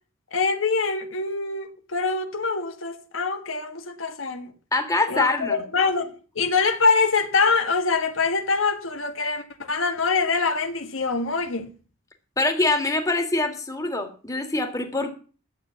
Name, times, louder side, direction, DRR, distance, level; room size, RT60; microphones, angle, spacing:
voice 1, 0.3-4.5 5.1-11.7, left 4 dB, 70° left, 1.4 m, -24 dB
voice 2, 4.7-5.6 12.4-15.1, left 2 dB, 15° left, 2.1 m, -24 dB
11.0 x 8.4 x 7.2 m
head